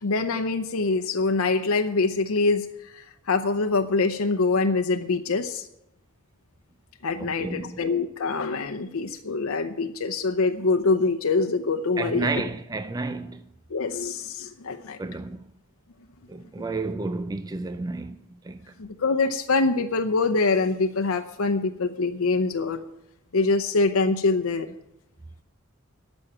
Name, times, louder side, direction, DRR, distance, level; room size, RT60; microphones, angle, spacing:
voice 1, 0.0-5.7 7.0-12.5 13.7-15.0 18.8-22.8 23.3-24.7, left 3 dB, 85° left, 0.7 m, -24 dB
voice 2, 7.2-7.8 12.0-13.5 15.0-15.5 16.3-18.7, right 3 dB, 20° right, 0.4 m, -31 dB
13.0 x 6.3 x 8.8 m
head